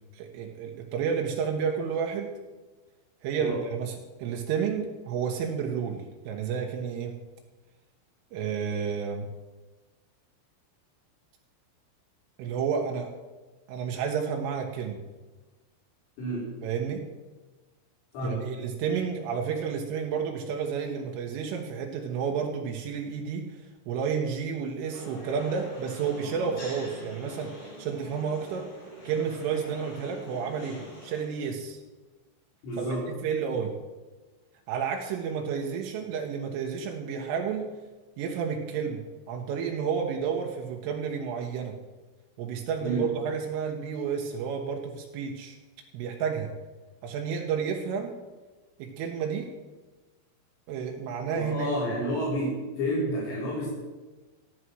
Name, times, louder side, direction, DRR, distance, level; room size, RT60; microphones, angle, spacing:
voice 1, 0.1-2.3 3.2-7.2 8.3-9.3 12.4-13.1 13.7-15.0 16.6-17.0 18.2-28.7 29.1-31.8 32.8-33.7 34.7-37.7 38.2-41.8 42.4-45.6 45.9-46.5 47.0-48.2 48.8-49.5 50.7-51.7, right 6 dB, 80° right, 1 dB, 3.7 m, -31 dB
sound 1, 24.9-31.2, equal, 45° left, 6.6 m, -44 dB
voice 2, 32.6-33.0 42.8-43.0 51.3-53.7, equal, 80° left, -8 dB, 7.1 m, -30 dB
14.5 x 11.5 x 6.2 m, 1.2 s
omnidirectional pair, 5.8 m